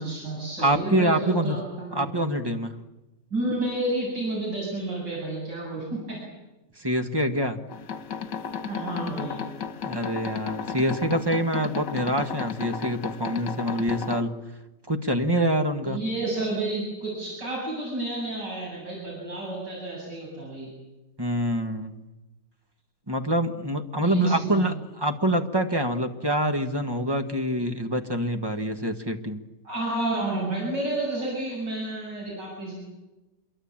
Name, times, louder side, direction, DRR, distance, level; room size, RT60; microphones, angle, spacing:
voice 1, 0.0-2.1 3.3-6.2 8.7-9.4 15.9-20.7 24.0-24.7 29.6-32.7, right 2 dB, 85° right, -4 dB, 8.5 m, -30 dB
voice 2, 0.6-1.6 1.9-2.8 6.8-7.6 9.8-14.3 14.9-16.0 21.2-22.0 23.1-29.4, right 1 dB, 15° right, 7 dB, 1.6 m, -26 dB
sound 1, 7.7-14.2, left 7 dB, 80° left, 2.0 m, -34 dB
27.0 x 23.0 x 8.9 m, 1.0 s
omnidirectional pair, 1.8 m